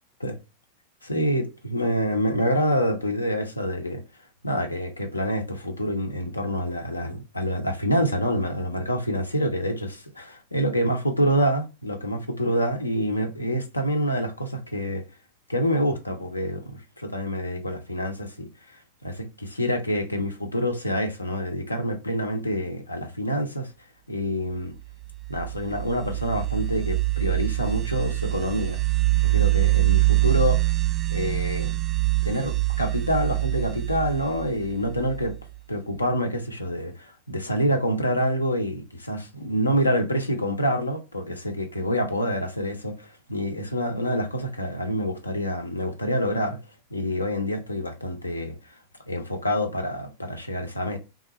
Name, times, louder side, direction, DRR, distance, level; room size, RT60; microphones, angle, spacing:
voice 1, 1.0-4.0 4.4-15.1 15.5-23.7 24.1-24.7 25.3-28.8 29.2-30.7 31.1-31.8 32.2-35.3 35.7-46.6 46.9-48.7 49.1-51.0, equal, 80° left, 0.6 m, -27 dB
sound 1, 25.0-35.6, right 20 dB, 30° right, 0.3 m, -24 dB
3.6 x 2.4 x 3.0 m
figure-of-eight pair, 90°, 0 cm